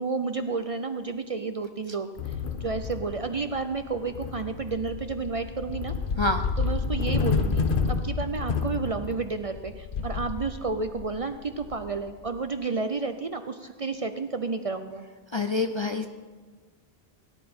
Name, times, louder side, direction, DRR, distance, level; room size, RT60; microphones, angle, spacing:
voice 1, 0.0-2.3 2.6-5.9 6.6-15.0, right 4 dB, 45° right, 9 dB, 0.5 m, -31 dB
sound 1, 2.2-12.4, left 5 dB, 60° left, 1.0 m, -30 dB
voice 2, 15.3-16.1, left 3 dB, 40° left, 6 dB, 0.4 m, -26 dB
17.5 x 10.5 x 4.4 m, 1.4 s
omnidirectional pair, 1.0 m